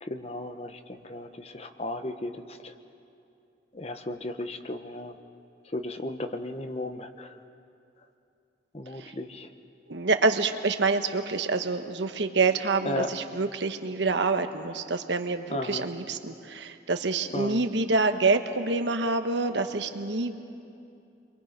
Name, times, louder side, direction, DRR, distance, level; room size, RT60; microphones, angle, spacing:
voice 1, 0.0-2.7 3.7-5.1 5.7-7.4 8.7-9.5 12.8-13.1 15.5-15.8 17.3-17.6, left 1 dB, 35° left, 8 dB, 0.9 m, -35 dB
voice 2, 9.9-20.4, right 3 dB, 75° right, 7 dB, 1.1 m, -27 dB
29.5 x 23.0 x 5.2 m, 2.6 s
head